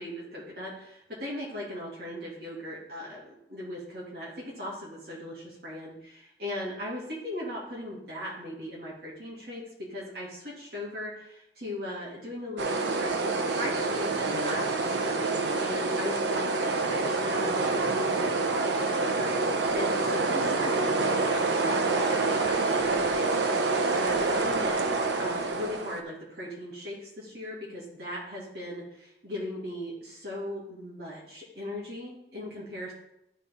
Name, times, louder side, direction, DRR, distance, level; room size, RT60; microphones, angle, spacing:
voice 1, 0.0-9.6 9.9-23.0 23.9-32.9, left 1 dB, 60° right, -6 dB, 2.6 m, -38 dB
sound 1, 12.6-26.0, right 3 dB, 80° right, 0.7 m, -27 dB
12.0 x 4.0 x 3.6 m, 0.83 s
head